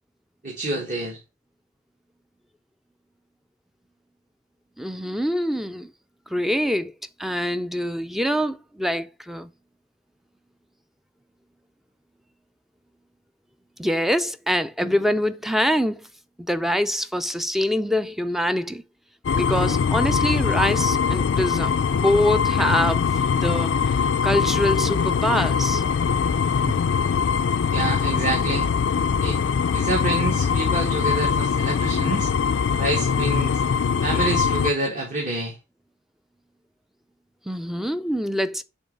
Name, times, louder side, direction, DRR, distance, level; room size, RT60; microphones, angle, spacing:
voice 1, 0.4-1.2 27.7-28.7 29.2-29.4 29.7-32.3 32.8-33.6 34.0-35.6, right 2 dB, 45° right, 1.6 m, -27 dB
voice 2, 4.8-5.9 6.3-6.9 7.2-9.5 13.8-16.1 16.5-18.8 19.4-23.0 23.4-23.7 24.2-25.8 26.7-26.8 37.5-38.6, equal, ahead, 0.4 m, -24 dB
sound 1, 19.2-34.7, left 6 dB, 85° left, 0.4 m, -22 dB
7.1 x 3.1 x 5.2 m
head